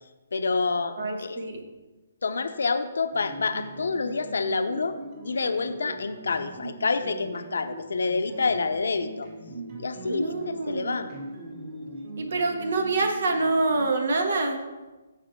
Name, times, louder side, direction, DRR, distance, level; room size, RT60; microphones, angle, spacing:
voice 1, 0.3-1.4 2.2-4.9 5.2-9.3 9.8-11.1, left 4 dB, 80° left, 8 dB, 0.7 m, -28 dB
voice 2, 1.0-1.6 10.0-11.0 12.2-14.6, right 3 dB, 70° right, 4 dB, 1.7 m, -26 dB
sound 1, 3.1-13.9, right 2 dB, 35° right, 2.3 m, -41 dB
14.5 x 5.1 x 3.7 m, 1.2 s
hypercardioid pair, 160°, 0 cm